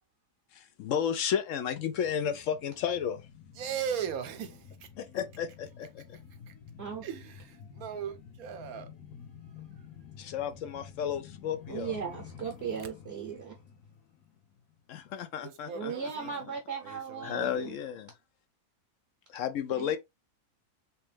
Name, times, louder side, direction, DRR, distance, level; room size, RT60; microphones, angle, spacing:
voice 1, 0.5-3.3 5.0-6.2 10.2-11.9 14.9-15.9 17.2-18.1 19.3-20.0, left 8 dB, 70° left, 0.8 m, -33 dB
sound 1, 1.8-14.9 15.2-15.3, left 7 dB, 90° left, 1.4 m, -51 dB
voice 2, 3.6-4.9 6.5-6.6 7.0-8.9 15.4-16.3 16.8-17.8, right 8 dB, 75° right, 1.2 m, -38 dB
voice 3, 11.7-13.6 15.7-17.8 19.7-20.0, right 6 dB, 55° right, 0.8 m, -37 dB
3.4 x 3.0 x 3.3 m
omnidirectional pair, 1.6 m